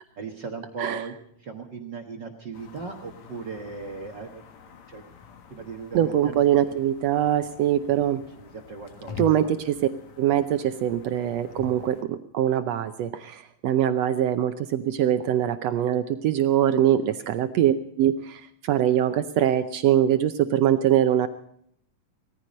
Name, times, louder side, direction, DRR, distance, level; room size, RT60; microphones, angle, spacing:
voice 1, 0.2-4.4 4.9-5.0 5.5-6.7 8.3-9.2 17.2-17.3, right 4 dB, 50° right, 4 dB, 1.3 m, -38 dB
sound 1, 2.5-12.0, left 7 dB, 60° left, 2.6 m, -45 dB
voice 2, 5.9-8.2 9.2-9.8 10.2-21.3, right 11 dB, 85° right, 10 dB, 1.4 m, -23 dB
19.0 x 14.5 x 5.2 m, 0.68 s
omnidirectional pair, 3.9 m